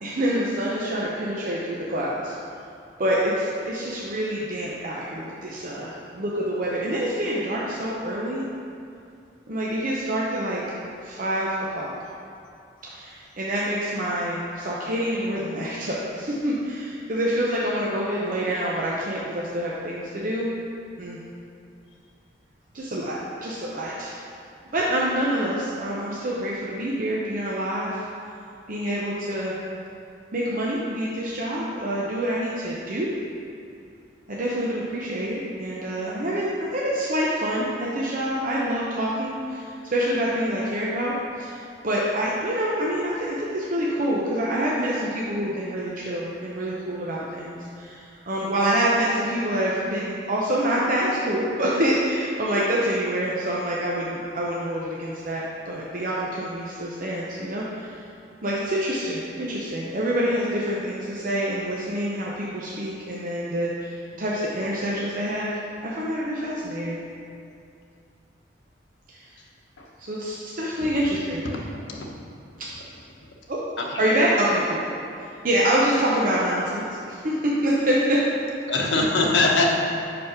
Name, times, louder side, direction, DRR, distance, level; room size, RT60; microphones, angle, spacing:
voice 1, 0.0-2.3 3.0-8.4 9.5-10.6 11.0-11.9 12.8-20.5 21.0-21.2 22.7-24.2 24.7-28.1 28.7-29.6 30.3-33.1 34.3-58.0 58.4-65.5 65.8-67.0 69.1-69.2 70.0-71.4 73.5-73.6 74.0-75.0 75.4-78.2, equal, 45° right, -5 dB, 0.7 m, -26 dB
voice 2, 73.8-74.1 78.7-79.7, left 3 dB, 80° left, -1 dB, 1.0 m, -22 dB
5.5 x 5.4 x 5.9 m, 2.5 s
head